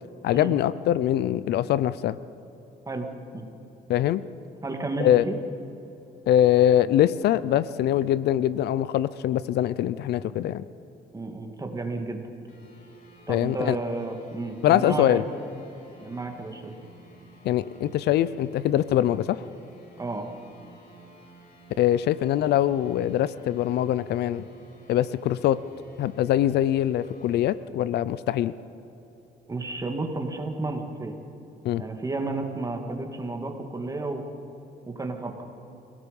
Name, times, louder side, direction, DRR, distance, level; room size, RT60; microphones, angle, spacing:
voice 1, 0.2-2.2 3.9-4.2 5.0-5.2 6.3-10.6 13.3-13.8 14.6-15.2 17.4-19.4 21.8-24.4 24.9-25.6 26.0-28.5 31.6-31.8, left 12 dB, 75° left, 17 dB, 0.6 m, -23 dB
voice 2, 4.6-5.4 11.1-12.2 13.3-15.2 16.0-16.7 20.0-20.2 29.5-31.1 31.8-34.2 34.9-35.4, right 2 dB, 20° right, 3 dB, 2.4 m, -32 dB
sound 1, 12.5-27.5, right 3 dB, 50° left, 4.8 m, -52 dB
28.5 x 17.5 x 5.4 m, 3.0 s
cardioid pair, 110°, 17 cm